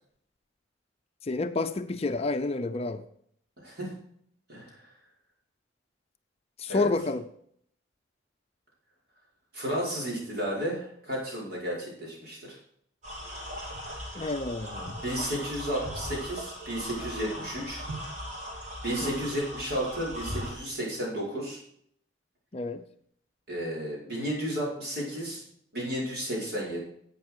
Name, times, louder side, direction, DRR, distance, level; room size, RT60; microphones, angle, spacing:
voice 1, 1.2-3.0 6.6-7.2 14.1-15.0 19.0-19.3 22.5-22.9, left 3 dB, 30° left, 0.5 m, -30 dB
voice 2, 4.5-4.9 6.7-6.9 9.5-12.6 15.0-17.8 18.8-21.6 23.5-25.4 25.7-26.8, equal, 55° right, 5.5 m, -33 dB
sound 1, 13.0-20.5, equal, 40° right, 2.9 m, -38 dB
11.5 x 8.2 x 4.8 m
head